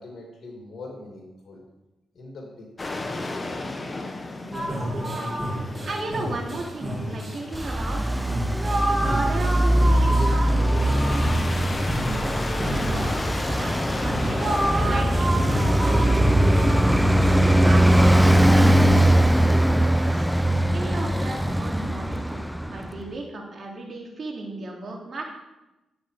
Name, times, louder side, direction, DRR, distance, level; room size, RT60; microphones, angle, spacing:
voice 1, 0.0-1.6 2.1-3.7, left 2 dB, 55° left, -1 dB, 2.4 m, -43 dB
sound 1, 2.8-7.8 8.2-17.3, left 2 dB, 25° left, 1.1 m, -34 dB
voice 2, 4.4-8.2 9.0-14.4 14.9-17.0 17.6-20.3 20.7-25.2, right 2 dB, 50° right, 0 dB, 2.7 m, -36 dB
sound 2, 4.5-20.3, right 1 dB, 25° right, 2.6 m, -30 dB
Traffic noise roadway noise, 7.5-23.0, right 1 dB, ahead, 0.4 m, -21 dB
11.0 x 7.5 x 4.9 m, 1.0 s
cardioid pair, 70°, 0 cm